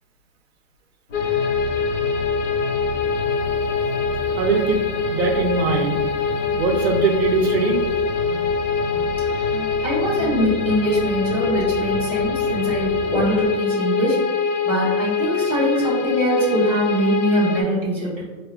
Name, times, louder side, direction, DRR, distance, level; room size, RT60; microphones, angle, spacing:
sound 1, 1.1-17.6, left 5 dB, 70° left, 0.5 m, -24 dB
sound 2, 1.1-13.5, left 1 dB, 45° left, 0.8 m, -32 dB
voice 1, 4.4-4.8 5.1-6.1 6.6-7.8, right 5 dB, 55° right, 3 dB, 0.5 m, -21 dB
voice 2, 9.8-14.2 14.6-18.2, right 1 dB, 5° left, -14 dB, 0.9 m, -23 dB
4.5 x 2.1 x 2.3 m, 1.4 s
hypercardioid pair, 170°, 38 cm